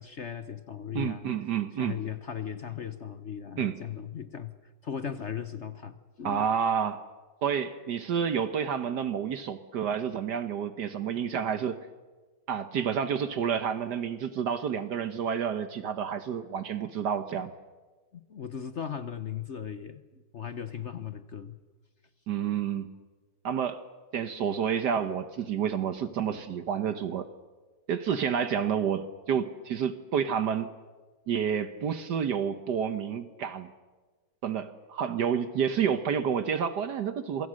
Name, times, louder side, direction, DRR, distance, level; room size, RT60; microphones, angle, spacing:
voice 1, 0.0-1.3 1.8-4.6 4.8-6.5 18.1-20.0 20.3-21.6 26.3-26.5, left 8 dB, 50° left, 12 dB, 1.0 m, -37 dB
voice 2, 0.9-2.0 3.6-3.8 6.2-7.0 7.4-11.8 12.5-17.5 22.3-22.9 23.4-23.8 24.1-27.3 27.9-30.8 31.3-33.7 34.4-37.5, right 7 dB, 65° right, 11 dB, 1.5 m, -29 dB
27.0 x 24.0 x 6.4 m, 1.3 s
omnidirectional pair, 2.0 m